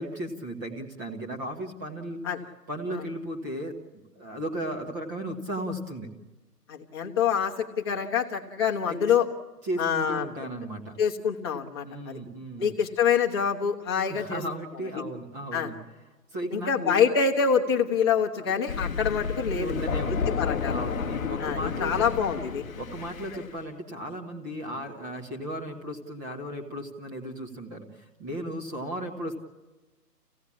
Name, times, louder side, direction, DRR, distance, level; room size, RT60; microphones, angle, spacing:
voice 1, 0.0-2.2 2.7-6.1 8.9-9.1 9.6-11.0 11.8-12.7 14.1-15.8 16.3-17.0 19.6-20.4 20.7-22.1 22.8-29.4, equal, 10° right, 1 dB, 1.4 m, -35 dB
voice 2, 6.7-9.3 9.8-10.3 11.0-12.2 12.6-14.4 15.5-15.7 16.5-19.8 20.1-20.7 21.4-22.6, left 7 dB, 15° left, -1 dB, 1.3 m, -26 dB
Thunder, 18.7-23.5, left 6 dB, 55° left, 1.0 m, -31 dB
27.0 x 16.5 x 8.5 m, 1.2 s
hypercardioid pair, 170°, 48 cm